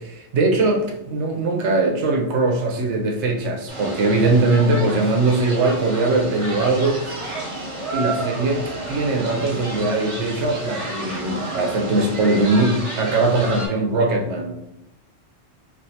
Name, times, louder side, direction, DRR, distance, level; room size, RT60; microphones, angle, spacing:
voice 1, 0.1-7.0 7.9-14.6, right 2 dB, 80° right, 2 dB, 0.9 m, -21 dB
sound 1, 3.7-13.7, right 1 dB, 35° right, 0.7 m, -31 dB
3.3 x 2.4 x 2.7 m, 0.86 s
omnidirectional pair, 1.2 m